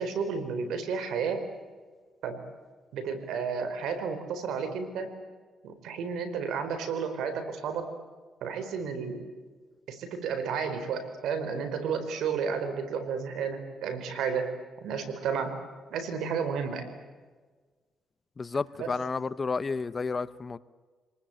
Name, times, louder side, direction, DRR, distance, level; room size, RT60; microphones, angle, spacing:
voice 1, 0.0-1.4 2.2-2.4 2.9-5.1 5.6-7.9 8.4-9.2 9.9-14.5 14.8-15.5 15.9-16.9 18.8-18.9, right 6 dB, 80° right, 9 dB, 4.4 m, -32 dB
voice 2, 18.4-20.6, left 4 dB, 30° left, 16 dB, 0.9 m, -31 dB
27.5 x 19.5 x 8.9 m, 1.4 s
cardioid pair, 90°, 0 cm